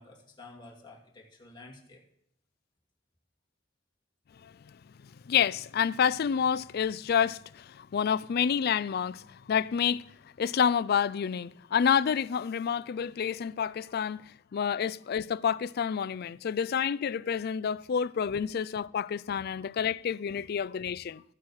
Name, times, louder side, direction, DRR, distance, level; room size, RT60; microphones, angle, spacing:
voice 1, 0.0-2.0 19.3-19.4 20.8-20.9, left 2 dB, 25° left, 2.5 m, -51 dB
voice 2, 5.3-10.0 10.4-14.2 14.5-21.2, left 7 dB, 55° left, 0.4 m, -28 dB
14.0 x 8.4 x 4.8 m
head